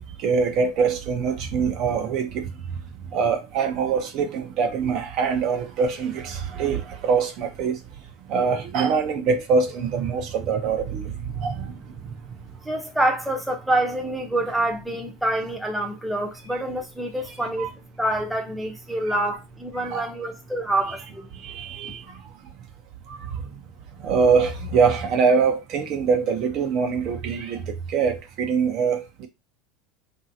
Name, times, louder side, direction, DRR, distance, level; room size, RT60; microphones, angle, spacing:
voice 1, 0.0-2.5 3.1-7.8 8.3-11.7 17.6-17.7 19.0-19.1 19.8-20.1 21.4-22.0 23.1-23.4 24.0-27.6 27.9-29.3, right 5 dB, 55° right, 0.7 m, -24 dB
voice 2, 12.6-17.7 18.0-21.3, right 1 dB, ahead, 0.7 m, -26 dB
2.9 x 2.7 x 2.7 m
supercardioid pair, 115°, 0 cm